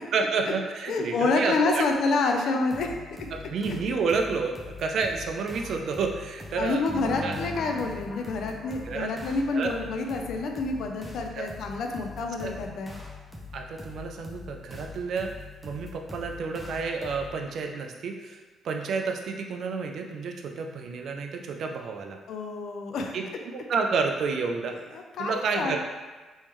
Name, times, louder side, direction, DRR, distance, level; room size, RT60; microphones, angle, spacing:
voice 1, 0.1-1.8 3.5-6.8 7.2-7.4 8.8-9.1 9.5-9.7 11.3-11.5 12.4-12.5 13.5-15.3 15.6-22.2 23.1-23.2 23.5-24.8 25.2-25.8, right 4 dB, 65° right, 3 dB, 0.4 m, -30 dB
voice 2, 0.9-2.9 6.6-12.9 22.3-23.1 24.9-25.8, left 3 dB, 70° left, 3 dB, 0.5 m, -28 dB
sound 1, 2.7-17.5, left 3 dB, ahead, 0.7 m, -43 dB
sound 2, 6.9-9.8, left 2 dB, 20° left, 1.1 m, -40 dB
3.5 x 3.1 x 3.1 m, 1.3 s
cardioid pair, 90°, 0 cm